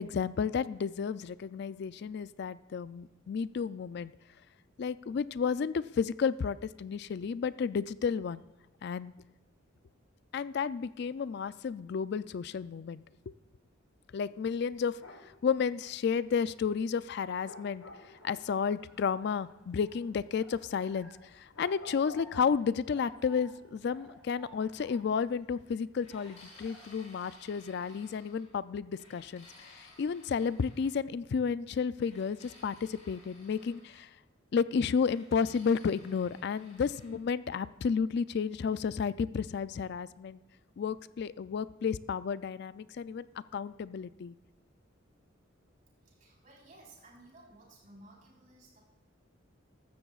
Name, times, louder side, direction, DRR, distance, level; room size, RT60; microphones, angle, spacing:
voice 1, 0.0-4.1 4.8-8.4 8.8-9.1 10.3-13.3 14.1-15.0 15.4-34.1 34.5-40.4 40.8-43.3 43.5-44.3, left 6 dB, 55° left, 16 dB, 0.3 m, -32 dB
sound 1, 14.8-15.4 17.4-18.5 21.5-23.3, left 1 dB, 80° left, 1.5 m, -49 dB
sound 2, 17.8-27.5, equal, 5° right, 1.7 m, -59 dB
sound 3, 26.0-28.5 29.0-30.9 32.0-34.0 35.0-37.2, left 2 dB, 35° left, 4.1 m, -57 dB
voice 2, 46.0-48.8, right 2 dB, 40° right, -3 dB, 4.1 m, -56 dB
15.0 x 13.0 x 2.4 m, 1.1 s
head